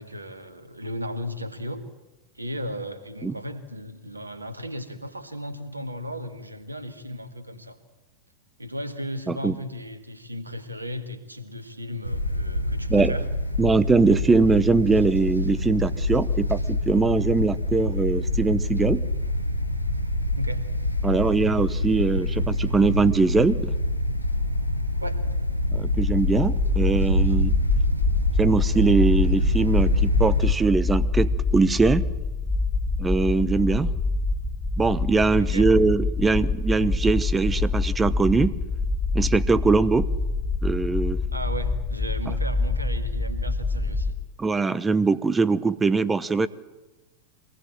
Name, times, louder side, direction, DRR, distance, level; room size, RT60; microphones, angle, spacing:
voice 1, 0.0-1.9 2.3-7.8 8.6-13.3 20.4-20.7 25.0-25.2 35.4-35.7 41.3-44.2, equal, 80° right, 10 dB, 1.9 m, -35 dB
sound 1, 12.0-30.5, left 1 dB, 90° left, 1.3 m, -26 dB
voice 2, 13.6-19.0 21.0-23.7 25.7-27.5 28.4-32.1 33.0-33.9 34.8-38.5 39.1-40.1 40.6-41.2 44.4-46.5, right 4 dB, 15° right, 17 dB, 0.9 m, -22 dB
sound 2, 25.9-44.1, left 3 dB, 15° left, 1.6 m, -26 dB
24.0 x 19.0 x 7.6 m, 1.1 s
figure-of-eight pair, 90°, 0 cm